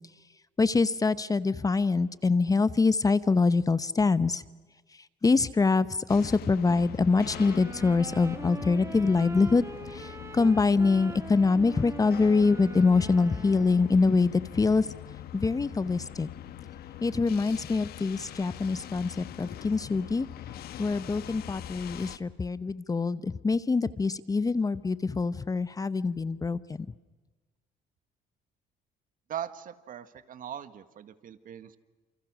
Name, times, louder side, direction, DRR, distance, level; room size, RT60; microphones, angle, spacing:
voice 1, 0.6-4.4 5.2-14.9 15.3-16.3 17.0-20.3 20.8-26.9, left 4 dB, 20° left, 15 dB, 0.9 m, -25 dB
sound 1, 6.1-22.2, left 11 dB, 65° left, 1.4 m, -43 dB
sound 2, 7.1-14.2, right 3 dB, 15° right, 1.4 m, -43 dB
voice 2, 29.3-31.8, right 10 dB, 55° right, 12 dB, 1.8 m, -40 dB
30.0 x 28.0 x 6.3 m, 1.2 s
cardioid pair, 110°, 17 cm